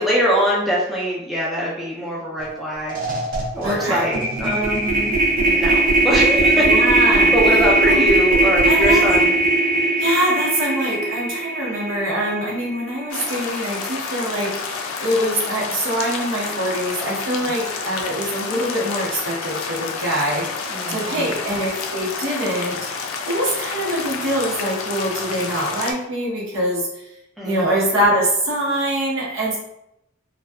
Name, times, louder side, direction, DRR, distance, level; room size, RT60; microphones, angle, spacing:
voice 1, 0.0-2.9 3.5-5.2 5.4-6.6 7.0-9.4 20.7-21.3 27.4-27.6, equal, ahead, -6 dB, 0.4 m, -23 dB
sound 1, 2.4-2.6 2.9-13.1, right 2 dB, 40° right, 0.6 m, -19 dB
voice 2, 3.6-4.1 6.5-7.3 7.9-8.1 8.6-9.1 10.0-27.1 27.4-29.6, equal, 75° right, -5 dB, 0.9 m, -24 dB
sound 2, 13.1-25.9, left 4 dB, 75° left, 0.4 m, -29 dB
2.6 x 2.2 x 2.2 m, 0.85 s
head